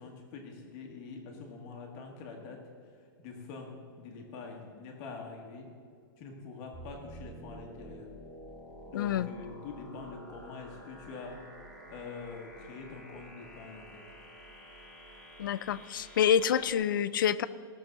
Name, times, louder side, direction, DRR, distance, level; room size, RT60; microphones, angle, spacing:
voice 1, 0.0-2.6 2.9-5.7 6.2-8.1 8.9-11.4 11.9-14.0, left 4 dB, 25° left, 1 dB, 1.3 m, -45 dB
sound 1, 6.7-16.7, right 1 dB, ahead, 2.7 m, -50 dB
voice 2, 8.9-9.3 15.4-17.5, left 9 dB, 60° left, 16 dB, 0.5 m, -27 dB
17.5 x 6.9 x 6.5 m, 2.2 s
supercardioid pair, 180°, 12 cm